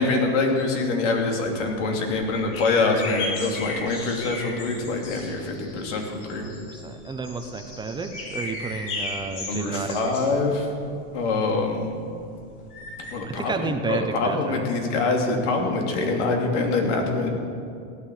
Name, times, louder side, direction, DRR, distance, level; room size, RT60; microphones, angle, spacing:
voice 1, 0.0-6.4 9.4-10.7 11.1-11.9 13.1-17.3, left 3 dB, 70° left, 2 dB, 2.9 m, -25 dB
sound 1, 1.2-13.1, left 2 dB, 50° left, 3.7 m, -36 dB
voice 2, 6.4-10.1 13.2-14.7, right 4 dB, 10° right, 6 dB, 0.9 m, -31 dB
16.0 x 9.8 x 7.3 m, 2.4 s
supercardioid pair, 130°, 37 cm